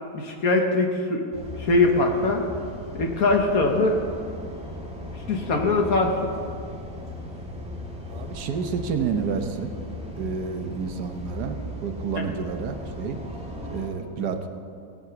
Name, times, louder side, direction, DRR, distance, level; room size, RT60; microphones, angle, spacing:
voice 1, 0.1-1.2 1.6-2.5 2.9-4.0 5.3-6.3 12.2-12.3, left 2 dB, 60° left, 3 dB, 1.5 m, -22 dB
sound 1, 1.3-13.9, left 1 dB, 5° right, 1.8 m, -37 dB
voice 2, 8.1-9.7 10.2-11.6 11.8-13.2 13.7-14.5, right 6 dB, 75° right, 6 dB, 1.5 m, -29 dB
18.0 x 8.0 x 5.8 m, 2.4 s
omnidirectional pair, 1.8 m